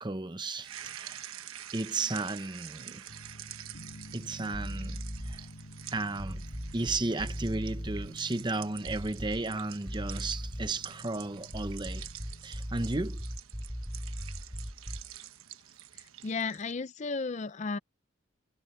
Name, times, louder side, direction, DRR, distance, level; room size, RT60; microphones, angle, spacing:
voice 1, 0.0-1.2 1.7-3.1 4.1-5.4 5.9-6.4 6.7-12.1 12.4-13.2, right 2 dB, 20° right, 0.8 m, -34 dB
sound 1, 0.6-16.7, right 11 dB, 85° right, 1.2 m, -47 dB
sound 2, 3.1-13.0, equal, 65° left, 7.7 m, -50 dB
sound 3, 4.5-5.5 6.2-8.1 8.9-9.6 9.9-10.8 11.5-15.2, equal, ahead, 1.1 m, -39 dB
voice 2, 16.2-17.8, left 4 dB, 35° left, 0.5 m, -33 dB
head